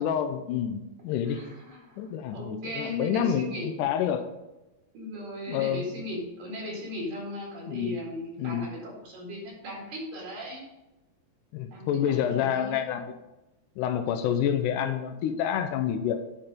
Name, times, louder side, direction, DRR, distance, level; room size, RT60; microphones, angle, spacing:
voice 1, 0.0-1.4 2.0-4.2 5.5-5.9 7.7-8.0 8.4-8.7 11.5-13.1 13.8-16.2, left 9 dB, 85° left, 8 dB, 1.8 m, -28 dB
voice 2, 1.3-2.0 2.3-3.7 4.9-10.6 11.7-11.8 12.2-12.9, left 1 dB, 65° right, -3 dB, 3.6 m, -37 dB
10.5 x 4.4 x 5.0 m, 1.0 s
omnidirectional pair, 4.2 m